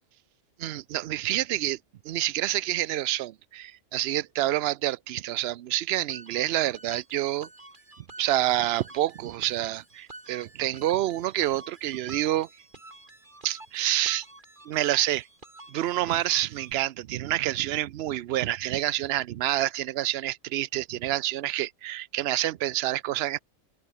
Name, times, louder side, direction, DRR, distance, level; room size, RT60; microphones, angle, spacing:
voice 1, 0.6-1.8 2.0-7.5 8.2-12.5 13.4-14.3 14.7-15.3 15.7-23.4, right 14 dB, 60° right, 0.7 m, -28 dB
sound 1, 6.1-16.7, right 2 dB, 35° right, 3.6 m, -49 dB
omnidirectional pair, 1.4 m